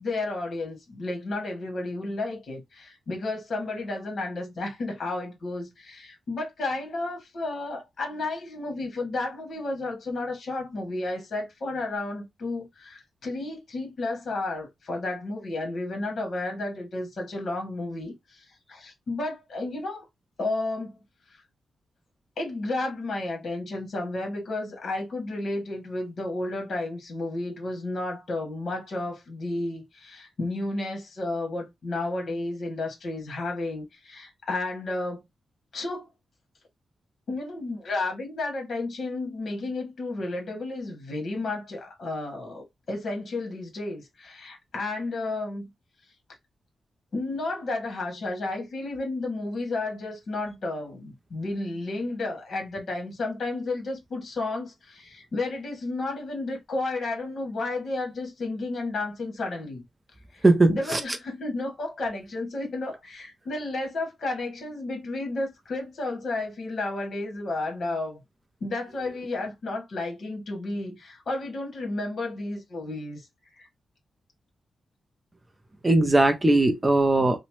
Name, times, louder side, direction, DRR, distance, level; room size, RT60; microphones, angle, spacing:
voice 1, 0.0-20.0 20.4-21.0 21.3-21.4 22.4-35.2 35.7-36.1 37.3-45.7 47.1-59.8 60.3-68.2 68.6-73.2 73.5-73.7, left 2 dB, 55° left, 1.3 m, -32 dB
voice 2, 60.4-61.0 75.8-77.4, right 2 dB, 15° right, 0.4 m, -19 dB
2.9 x 2.0 x 3.0 m
wide cardioid pair, 125°, 0 cm